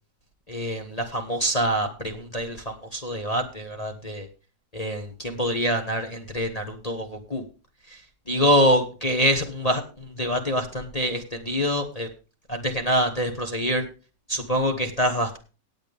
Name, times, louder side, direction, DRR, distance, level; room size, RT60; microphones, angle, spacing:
voice 1, 0.5-4.3 4.7-7.4 7.9-8.0 8.3-12.1 12.5-13.9 14.3-15.4, equal, 25° left, 3 dB, 1.1 m, -25 dB
18.5 x 8.1 x 3.4 m, 0.34 s
omnidirectional pair, 1.9 m